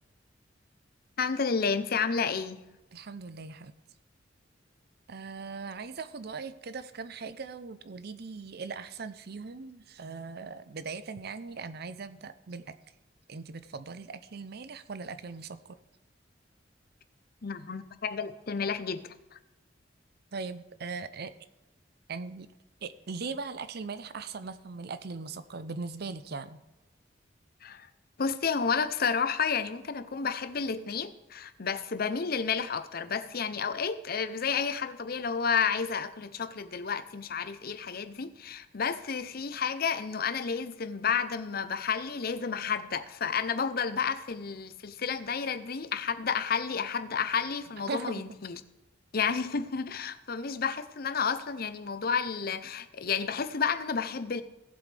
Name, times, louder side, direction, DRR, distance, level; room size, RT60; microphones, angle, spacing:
voice 1, 1.2-2.6 17.4-19.0 19.3-19.4 27.6-27.9 28.2-48.6 49.1-54.4, left 6 dB, 55° left, 0.7 m, -31 dB
voice 2, 2.9-3.7 5.1-12.7 13.3-15.8 20.3-21.3 22.1-22.5 22.8-26.6 47.9-48.3, right 4 dB, 60° right, 0.6 m, -39 dB
17.5 x 7.8 x 3.4 m
head